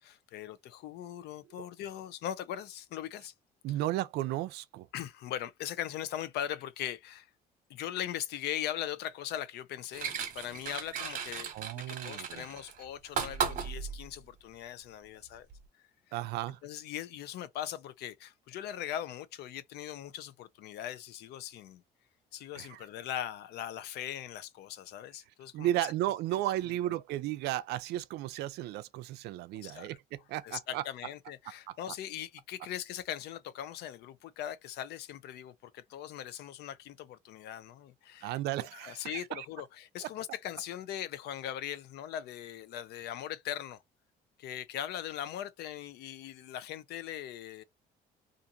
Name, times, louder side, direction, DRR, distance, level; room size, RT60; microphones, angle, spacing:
voice 1, 0.0-3.3 4.9-7.3 7.7-15.5 16.1-16.2 16.6-21.8 22.3-25.7 29.5-29.9 30.4-43.8 44.4-47.6, left 11 dB, 80° left, 0.6 m, -40 dB
voice 2, 3.6-4.9 11.5-12.4 16.1-16.6 22.6-22.8 25.5-30.8 31.7-31.8 38.2-39.5 40.0-40.1, right 14 dB, 80° right, 0.4 m, -34 dB
sound 1, 9.9-14.1 15.5-15.6, right 7 dB, 55° right, 1.0 m, -36 dB
2.5 x 2.5 x 2.6 m
cardioid pair, 110°, 17 cm